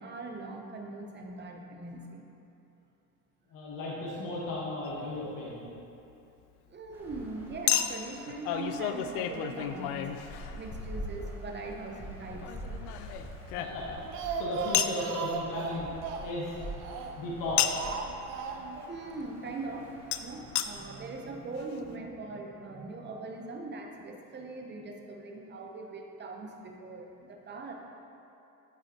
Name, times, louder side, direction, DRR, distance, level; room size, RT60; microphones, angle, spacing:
voice 1, 0.0-2.2 6.7-10.1 10.5-12.4 12.7-12.9 18.3-19.9 20.2-27.7, right 3 dB, 25° right, 1 dB, 0.9 m, -41 dB
voice 2, 3.5-5.6 13.5-15.9 16.2-16.6 17.2-17.8, left 1 dB, 45° left, -5 dB, 1.5 m, -35 dB
Chink clink, 4.9-5.0 7.7-10.9 12.4-14.1 14.7-15.0 17.6-18.0 20.1-20.2 20.6-20.7 21.3-21.4 21.6-21.7, left 10 dB, 70° left, 0.5 m, -31 dB
sound 1, 6.9-21.0, equal, 5° right, 1.4 m, -45 dB
Speech, 13.8-17.3 17.8-18.9 19.2-19.3 19.6-19.7, right 5 dB, 60° right, 0.7 m, -37 dB
9.9 x 4.8 x 3.0 m, 2.8 s
hypercardioid pair, 80°, 46 cm